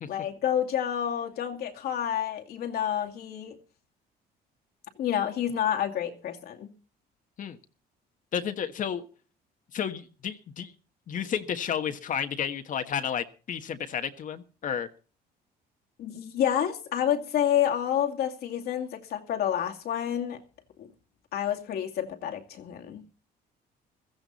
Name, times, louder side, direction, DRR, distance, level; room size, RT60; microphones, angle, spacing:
voice 1, 0.1-3.6 5.0-6.7 16.0-20.4 20.8-20.9 21.3-23.0, left 10 dB, 70° left, 2.4 m, -29 dB
voice 2, 8.3-9.0 9.7-10.7 11.1-14.9, left 8 dB, 50° left, 1.4 m, -32 dB
16.0 x 15.0 x 4.2 m
cardioid pair, 110°, 17 cm